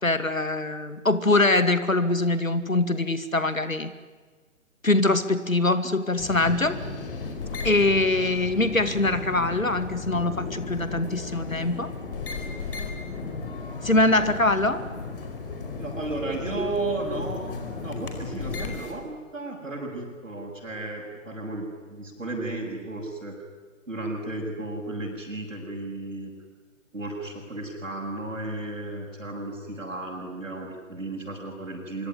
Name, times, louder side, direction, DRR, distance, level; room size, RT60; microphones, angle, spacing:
voice 1, 0.0-3.9 4.8-6.8 7.6-11.9 13.8-14.8, left 2 dB, 85° left, 11 dB, 2.4 m, -23 dB
sound 1, 6.2-18.9, left 4 dB, 40° left, 4.9 m, -35 dB
voice 2, 15.8-17.4 17.8-23.4 23.9-26.3 26.9-32.1, right 2 dB, 70° right, -4 dB, 7.2 m, -34 dB
25.0 x 24.0 x 9.9 m, 1.4 s
figure-of-eight pair, 140°, 40 cm